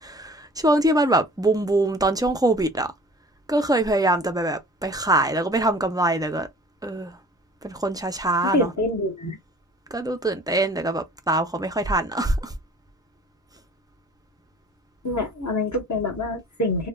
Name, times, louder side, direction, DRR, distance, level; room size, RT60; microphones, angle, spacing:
voice 1, 0.0-2.9 3.5-6.5 6.8-7.2 7.6-8.7 9.9-12.5, right 1 dB, 10° right, 0.5 m, -23 dB
voice 2, 8.5-9.4 15.0-16.9, left 1 dB, 40° left, 1.0 m, -25 dB
3.2 x 2.2 x 2.2 m
wide cardioid pair, 60°, 44 cm